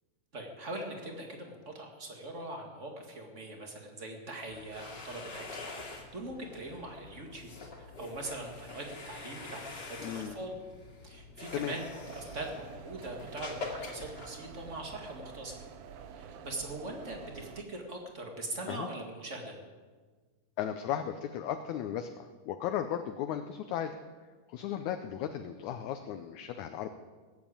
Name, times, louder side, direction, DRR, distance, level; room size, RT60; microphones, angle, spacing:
voice 1, 0.3-10.6 11.0-11.9 12.1-15.6 16.1-19.6, right 2 dB, 25° right, 2 dB, 1.8 m, -42 dB
sound 1, 4.4-15.1, left 3 dB, 35° left, 2.4 m, -46 dB
voice 2, 10.0-10.4 11.5-11.7 18.7-18.9 20.6-24.0 24.5-26.9, left 10 dB, 75° left, 8 dB, 2.0 m, -35 dB
sound 2, 12.0-17.6, right 7 dB, 75° right, 2.2 m, -48 dB
18.5 x 8.1 x 8.7 m, 1.4 s
omnidirectional pair, 3.7 m